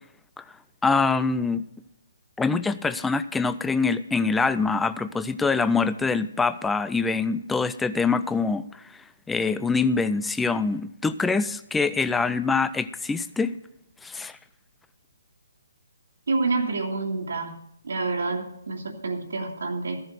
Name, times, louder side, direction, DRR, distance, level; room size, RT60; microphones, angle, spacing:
voice 1, 0.8-1.7 2.4-8.8 9.3-13.5 14.0-14.4, left 4 dB, 5° left, 14 dB, 0.5 m, -24 dB
voice 2, 16.3-17.5 17.8-20.0, right 3 dB, 80° right, -1 dB, 2.3 m, -28 dB
14.0 x 7.8 x 6.6 m, 0.76 s
hypercardioid pair, 155°, 0 cm